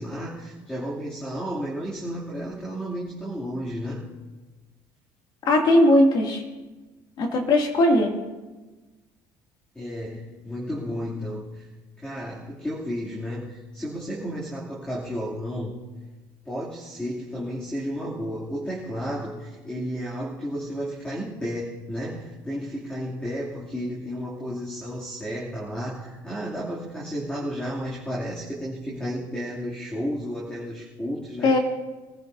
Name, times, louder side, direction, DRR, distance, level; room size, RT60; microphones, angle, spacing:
voice 1, 0.0-4.1 9.7-11.7 12.0-15.8 16.4-31.6, equal, 10° left, -6 dB, 3.0 m, -32 dB
voice 2, 5.4-6.4 7.2-8.1 31.4-31.6, left 1 dB, 55° left, 1 dB, 2.8 m, -18 dB
23.5 x 14.5 x 2.8 m, 1.2 s
cardioid pair, 120°, 9 cm